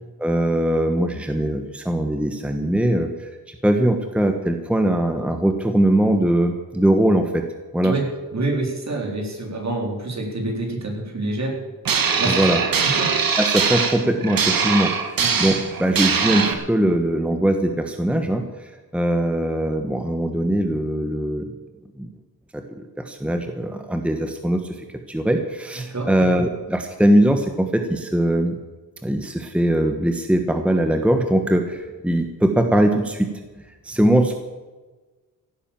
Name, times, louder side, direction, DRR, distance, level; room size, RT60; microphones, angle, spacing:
voice 1, 0.2-7.4 7.7-8.0 12.3-12.6 13.4-21.5 22.0-22.1 22.5-28.6 29.0-34.3, right 1 dB, 5° right, 5 dB, 1.1 m, -21 dB
voice 2, 8.3-11.5 12.2-12.5 15.2-15.4 25.9-26.1, right 2 dB, 50° right, 1 dB, 4.0 m, -26 dB
sound 1, 11.8-16.5, right 6 dB, 70° right, 1.8 m, -22 dB
16.0 x 9.6 x 7.4 m, 1.2 s
wide cardioid pair, 110°, 36 cm